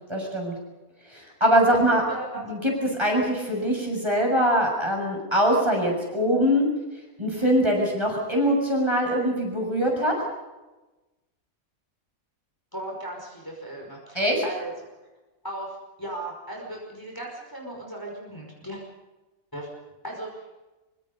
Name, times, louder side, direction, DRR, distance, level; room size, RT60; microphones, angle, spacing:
voice 1, 0.1-0.5 1.1-2.0 2.4-6.7 7.2-10.1 14.2-14.4, equal, 20° right, 0 dB, 7.0 m, -23 dB
voice 2, 1.7-2.4 12.7-14.7 15.4-15.7 16.0-18.8 19.5-19.7 20.0-20.5, right 1 dB, 15° left, -1 dB, 5.4 m, -37 dB
25.0 x 24.5 x 5.5 m, 1.1 s
omnidirectional pair, 1.5 m